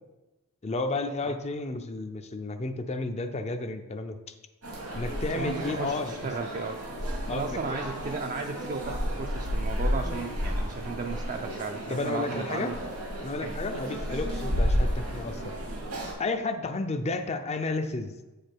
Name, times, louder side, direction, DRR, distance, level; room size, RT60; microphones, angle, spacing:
voice 1, 0.6-4.4 4.9-6.1 7.3-7.8 11.9-12.7 13.2-15.5 16.2-18.1, left 3 dB, 30° left, 8 dB, 0.5 m, -32 dB
sound 1, 4.6-16.1, equal, 90° right, 2.0 m, -32 dB
voice 2, 5.3-12.7 13.4-13.6, right 4 dB, 35° right, 3 dB, 0.4 m, -35 dB
7.5 x 5.0 x 4.5 m, 1.1 s
head